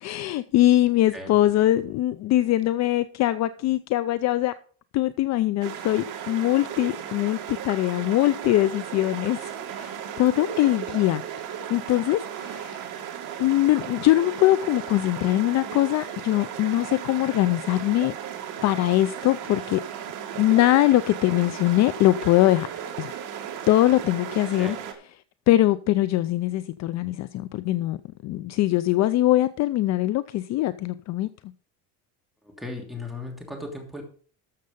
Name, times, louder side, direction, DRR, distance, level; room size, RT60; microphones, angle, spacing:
voice 1, 0.0-4.5 4.9-11.2 11.7-12.8 13.4-18.1 18.6-19.8 20.4-22.7 23.0-23.2 23.7-24.8 25.5-31.3, left 15 dB, 45° left, 0.5 m, -22 dB
sound 1, 5.6-24.9, right 9 dB, 55° right, 2.3 m, -36 dB
voice 2, 32.4-34.0, left 2 dB, ahead, 2.9 m, -36 dB
13.5 x 6.7 x 5.3 m
cardioid pair, 145°, 37 cm